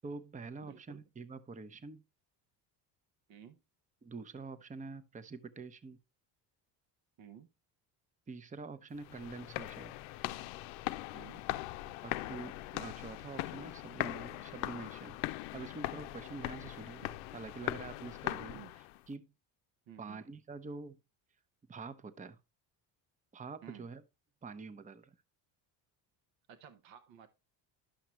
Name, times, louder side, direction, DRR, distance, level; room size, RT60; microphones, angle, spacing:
voice 1, 0.0-2.0 4.0-6.0 8.3-10.0 12.0-18.6 19.1-19.3 20.0-21.0 21.7-22.4 23.3-24.0 24.4-25.2, right 4 dB, 15° right, 0.7 m, -46 dB
voice 2, 0.6-1.0 3.3-3.6 7.2-7.5 11.1-11.5 18.3-18.7 19.9-20.2 23.6-23.9 26.5-27.3, right 8 dB, 65° right, 1.0 m, -54 dB
sound 1, 9.0-19.0, left 16 dB, 80° left, 0.6 m, -40 dB
11.5 x 5.8 x 3.0 m
supercardioid pair, 80°, 48 cm